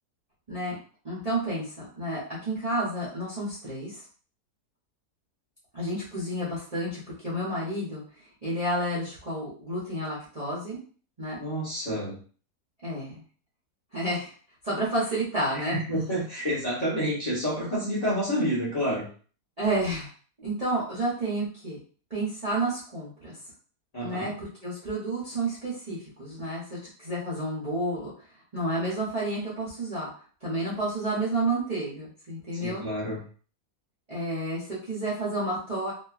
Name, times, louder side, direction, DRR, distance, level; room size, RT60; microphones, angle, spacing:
voice 1, 1.0-4.0 5.7-8.0 8.4-10.8 11.2-11.4 12.8-13.2 13.9-14.3 14.6-15.8 19.6-20.1 20.4-21.8 22.1-23.4 24.0-28.1 28.5-30.1 30.4-32.8 34.1-35.9, right 1 dB, 35° right, -9 dB, 0.7 m, -30 dB
voice 2, 11.3-12.1 15.7-19.1 23.9-24.3 32.6-33.2, equal, 30° left, -7 dB, 0.9 m, -29 dB
2.9 x 2.4 x 2.3 m, 0.42 s
omnidirectional pair, 1.7 m